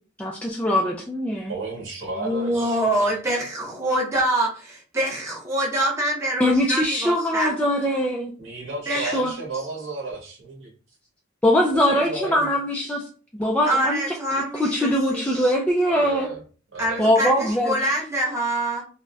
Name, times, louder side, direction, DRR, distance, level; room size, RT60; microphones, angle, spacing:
voice 1, 0.2-1.5 6.4-8.3 8.9-9.3 11.4-13.0 13.4-14.0 14.3-16.3 17.0-17.7, equal, 5° left, -2 dB, 0.3 m, -22 dB
voice 2, 1.5-3.1 8.4-10.7 11.8-12.5 15.9-16.4 16.7-17.1, right 3 dB, 70° right, -2 dB, 1.4 m, -33 dB
voice 3, 2.1-7.5 8.9-9.1 13.6-15.5 16.8-18.8, right 1 dB, 15° right, -3 dB, 0.7 m, -25 dB
3.7 x 2.1 x 2.3 m, 0.39 s
head